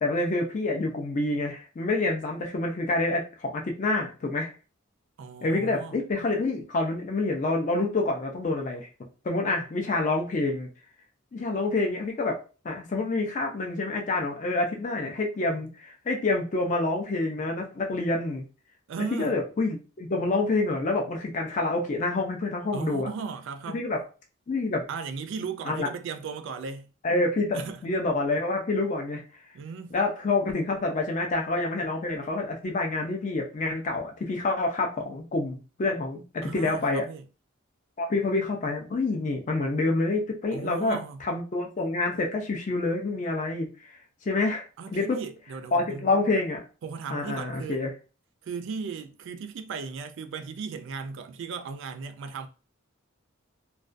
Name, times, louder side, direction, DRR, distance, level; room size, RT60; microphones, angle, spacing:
voice 1, 0.0-4.5 5.4-8.9 9.2-10.7 11.3-12.4 12.6-18.4 19.1-23.1 23.7-24.0 24.5-24.8 25.7-25.9 27.0-29.2 29.9-37.1 38.0-43.7 44.3-44.6 44.9-45.2 45.7-46.7 47.1-47.9, left 2 dB, 35° left, 0.4 m, -27 dB
voice 2, 5.2-6.0 18.9-19.4 22.7-23.8 24.9-26.9 27.5-27.8 29.5-29.9 36.4-37.2 40.5-41.2 44.8-46.1 46.8-47.8 48.4-52.5, right 5 dB, 60° right, 0.3 m, -36 dB
2.3 x 2.2 x 2.5 m
head